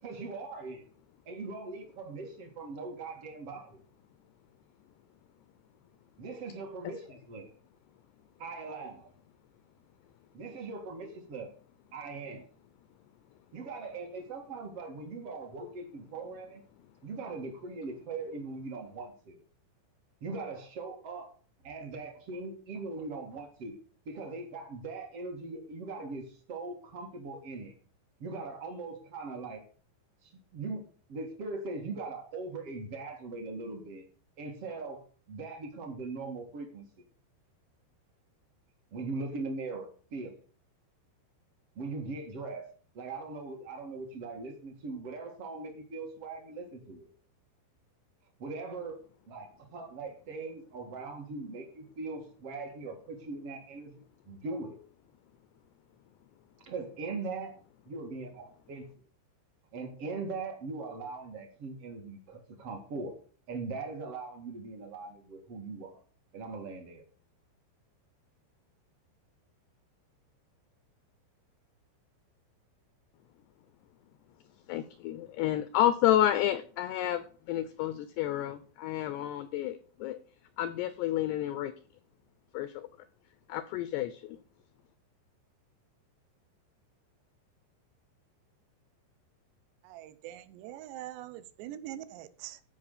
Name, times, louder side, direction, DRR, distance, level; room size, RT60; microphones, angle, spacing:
voice 1, 0.0-0.9 1.3-3.8 6.2-7.5 8.4-9.1 10.3-11.5 11.9-12.4 13.5-16.6 17.0-19.4 20.2-21.3 21.6-23.7 24.1-27.7 28.2-29.6 30.2-30.8 31.1-34.0 34.4-36.8 38.9-40.4 41.8-42.7 42.9-47.1 48.4-49.0 49.3-54.8 56.6-57.5 57.9-58.9 59.7-63.2 63.5-66.0 66.3-67.0, right 3 dB, 50° right, 1.8 m, -40 dB
voice 2, 74.7-80.2 80.6-81.7 82.5-82.9 83.5-84.4, left 12 dB, 85° left, 2.4 m, -30 dB
voice 3, 89.8-92.6, right 12 dB, 75° right, 2.7 m, -43 dB
14.0 x 5.5 x 6.7 m
omnidirectional pair, 5.5 m